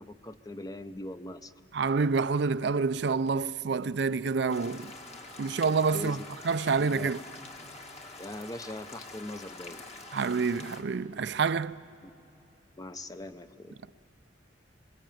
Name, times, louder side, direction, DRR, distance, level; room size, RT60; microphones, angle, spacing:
voice 1, 0.0-1.5 5.9-6.2 6.7-7.1 8.2-9.8 12.8-13.8, left 1 dB, 20° left, 0.7 m, -41 dB
voice 2, 1.7-4.9 5.4-7.2 10.1-11.8, right 4 dB, 65° right, 0.5 m, -28 dB
sound 1, 4.5-10.8, left 3 dB, 35° left, 1.8 m, -46 dB
26.0 x 21.5 x 9.2 m
head